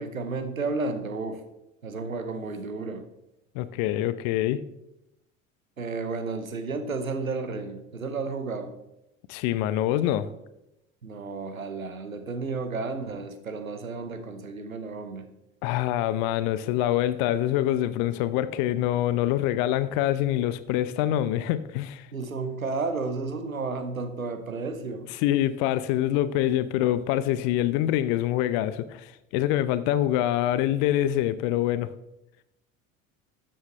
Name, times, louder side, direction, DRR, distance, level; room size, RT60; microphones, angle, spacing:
voice 1, 0.0-1.4 1.8-3.1 5.8-8.7 11.0-15.3 22.1-25.1, right 3 dB, 90° right, 0.9 m, -32 dB
voice 2, 3.5-4.6 9.3-10.3 15.6-22.1 25.2-31.9, left 13 dB, 55° left, 0.7 m, -25 dB
13.0 x 7.7 x 3.3 m
figure-of-eight pair, 65°, 40 cm